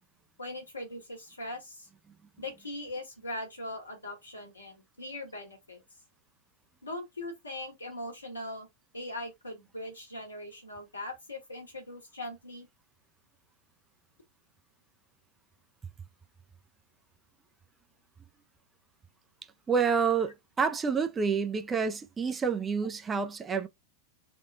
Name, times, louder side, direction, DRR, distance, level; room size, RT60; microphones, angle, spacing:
voice 1, 0.4-1.9 2.4-5.8 6.8-8.7 8.9-12.7, left 1 dB, 80° left, 1.5 m, -40 dB
voice 2, 19.7-23.7, right 6 dB, 20° right, 0.5 m, -28 dB
3.7 x 2.3 x 3.4 m
figure-of-eight pair, 90°, 0 cm